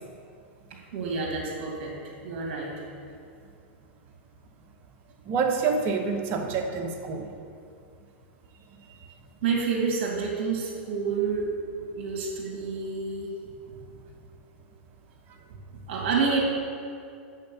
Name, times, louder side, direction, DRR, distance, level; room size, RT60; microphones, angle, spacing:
voice 1, 0.9-2.7 9.4-11.5 11.9-14.0 15.7-16.4, right 5 dB, 60° right, -1 dB, 2.5 m, -29 dB
voice 2, 5.2-7.3 8.7-9.2, right 5 dB, 40° right, 3 dB, 1.1 m, -28 dB
6.9 x 6.4 x 7.0 m, 2.4 s
hypercardioid pair, 120°, 6 cm